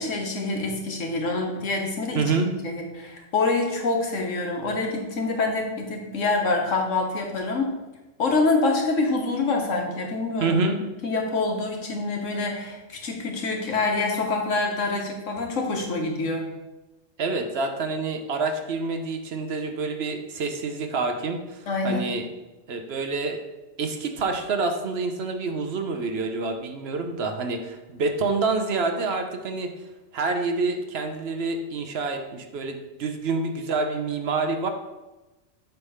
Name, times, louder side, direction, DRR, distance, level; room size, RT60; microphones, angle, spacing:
voice 1, 0.0-7.7 8.2-10.6 11.0-16.5 21.7-22.1, left 3 dB, 90° left, 1 dB, 1.5 m, -26 dB
voice 2, 2.1-2.5 10.4-10.8 17.2-22.2 22.7-23.4 23.8-29.7 30.1-34.7, right 3 dB, 60° right, 5 dB, 0.9 m, -27 dB
8.0 x 3.4 x 5.5 m, 1.1 s
omnidirectional pair, 1.3 m